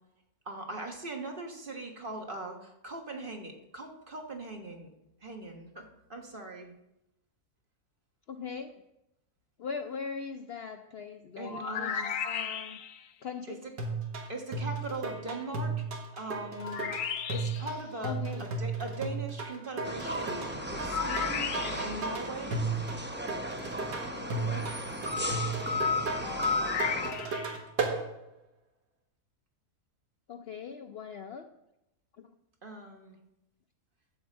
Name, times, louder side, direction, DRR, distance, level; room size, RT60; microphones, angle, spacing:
voice 1, 0.4-4.9 5.2-6.7 11.4-12.1 13.5-13.7 14.3-15.8 16.2-16.8 17.3-22.6 32.6-33.2, right 2 dB, 35° right, 2 dB, 1.4 m, -40 dB
voice 2, 8.3-8.8 9.6-12.8 13.2-13.6 18.0-18.5 24.1-24.7 30.3-31.5 32.2-32.3, left 6 dB, 85° left, 7 dB, 0.5 m, -40 dB
sound 1, 11.4-13.1 16.6-17.8 20.9-22.1 26.2-27.6, left 7 dB, 60° left, 1.0 m, -35 dB
sound 2, 13.8-28.0, right 3 dB, 80° right, 2.1 m, -34 dB
sound 3, 19.8-27.1, left 2 dB, 10° right, 0.6 m, -34 dB
13.0 x 4.9 x 7.5 m, 0.89 s
omnidirectional pair, 1.7 m